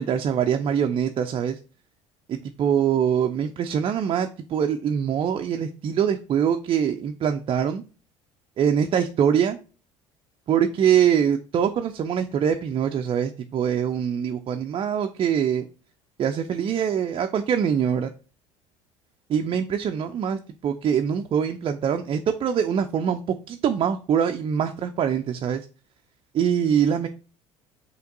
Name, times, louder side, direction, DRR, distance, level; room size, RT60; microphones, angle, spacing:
voice 1, 0.0-1.6 2.3-7.8 8.6-9.6 10.5-15.7 16.2-18.1 19.3-23.2 23.5-25.6 26.3-27.1, right 8 dB, 35° right, 6 dB, 0.4 m, -23 dB
5.7 x 2.9 x 2.6 m, 0.35 s
hypercardioid pair, 65°, 16 cm